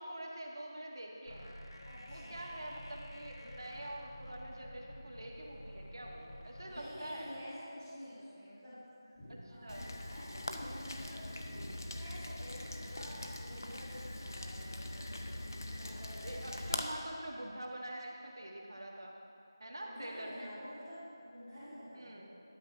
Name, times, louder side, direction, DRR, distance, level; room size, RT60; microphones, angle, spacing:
voice 1, 0.0-1.5 2.1-7.4 9.3-9.9 16.2-19.1 19.6-20.5 21.9-22.3, right 1 dB, 60° right, -1 dB, 1.5 m, -45 dB
sound 1, 1.3-6.9, equal, 80° left, 1.1 m, -50 dB
voice 2, 1.8-2.5 6.6-8.8 9.5-11.3 11.9-15.1 15.8-16.3 19.9-22.4, equal, 5° right, -21 dB, 2.2 m, -49 dB
sound 2, 5.5-5.6 6.8-7.6 9.1-10.1 11.4-12.4, equal, 15° left, 1.5 m, -54 dB
Rain, 9.7-16.8, left 1 dB, 50° left, 0.6 m, -42 dB
11.5 x 5.9 x 5.1 m, 2.7 s
figure-of-eight pair, 180°, 2 cm